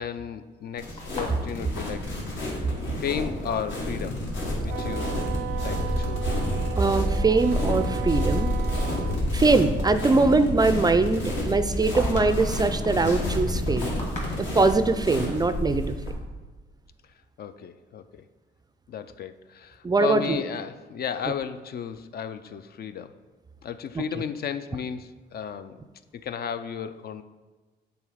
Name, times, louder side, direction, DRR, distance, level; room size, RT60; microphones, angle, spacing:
voice 1, 0.0-2.1 2.4-4.2 4.6-5.2 5.6-6.4 9.1-9.4 17.4-18.3 18.9-23.2 23.6-25.8 26.1-27.2, left 8 dB, 50° left, 11 dB, 0.4 m, -34 dB
sound 1, 0.8-16.1, left 1 dB, 70° left, 1.8 m, -29 dB
sound 2, 1.0-3.0 3.2-4.0 4.6-5.2 5.5-5.8 6.4-6.5 7.1-8.6 8.9-9.0 11.3-14.8, left 1 dB, 35° left, 1.9 m, -41 dB
Wind instrument woodwind instrument, 4.7-9.2, right 13 dB, 80° right, 0.5 m, -36 dB
voice 2, 6.8-8.5 9.3-13.9 14.4-16.1 19.8-20.4 24.0-24.1, right 3 dB, 20° right, 11 dB, 0.3 m, -22 dB
7.0 x 3.9 x 5.0 m, 1.3 s
cardioid pair, 90°, 20 cm